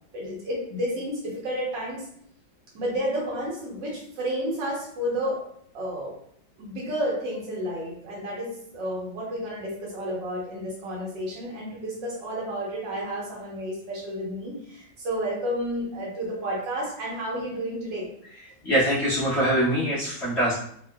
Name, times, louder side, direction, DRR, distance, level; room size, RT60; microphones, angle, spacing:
voice 1, 0.1-2.1 2.7-5.4 5.7-6.1 6.6-18.1, equal, 70° right, -4 dB, 1.6 m, -31 dB
voice 2, 18.6-20.5, right 1 dB, 45° left, -11 dB, 0.9 m, -23 dB
3.6 x 2.4 x 2.2 m, 0.66 s
omnidirectional pair, 2.1 m